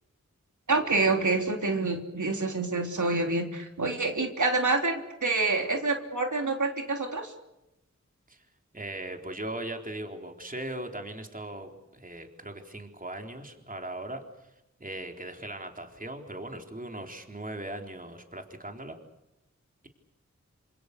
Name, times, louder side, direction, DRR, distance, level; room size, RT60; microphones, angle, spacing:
voice 1, 0.7-7.3, right 3 dB, 75° right, 3 dB, 3.6 m, -27 dB
voice 2, 8.7-14.5 14.8-19.0, right 1 dB, 30° right, 4 dB, 3.8 m, -39 dB
27.5 x 27.0 x 6.7 m, 0.91 s
wide cardioid pair, 70°, 30 cm